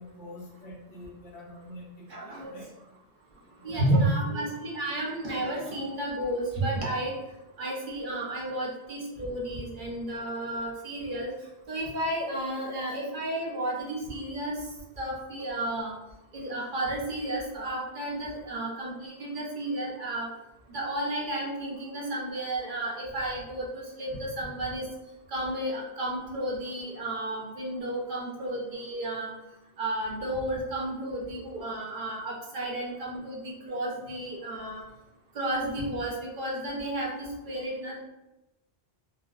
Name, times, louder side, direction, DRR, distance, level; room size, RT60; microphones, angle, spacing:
voice 1, 0.0-2.7 3.6-4.0 4.2-4.4, left 1 dB, 80° left, -4 dB, 1.0 m, -45 dB
voice 2, 2.1-2.5 3.6-7.1 7.6-11.3 11.7-14.6 15.0-15.9 16.3-20.3 20.7-24.9 25.3-29.3 29.8-34.8 35.3-38.0, right 1 dB, 50° right, -3 dB, 0.9 m, -32 dB
3.9 x 2.2 x 2.3 m, 0.97 s
omnidirectional pair, 1.1 m